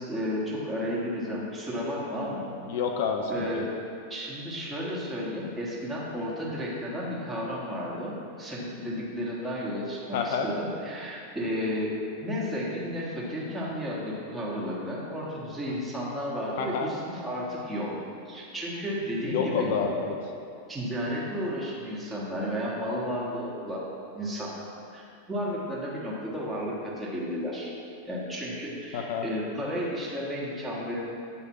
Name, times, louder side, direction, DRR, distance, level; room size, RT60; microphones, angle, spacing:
voice 1, 0.0-2.4 3.3-3.7 4.1-11.9 12.2-17.9 18.2-19.7 20.7-23.8 24.1-24.7 24.9-27.7 28.0-31.0, equal, 10° right, -6 dB, 1.5 m, -33 dB
voice 2, 2.7-3.6 10.1-10.5 16.6-16.9 19.3-20.1 28.9-29.3, left 6 dB, 55° left, 2 dB, 0.4 m, -28 dB
8.9 x 3.3 x 4.4 m, 2.5 s
figure-of-eight pair, 90°, 0 cm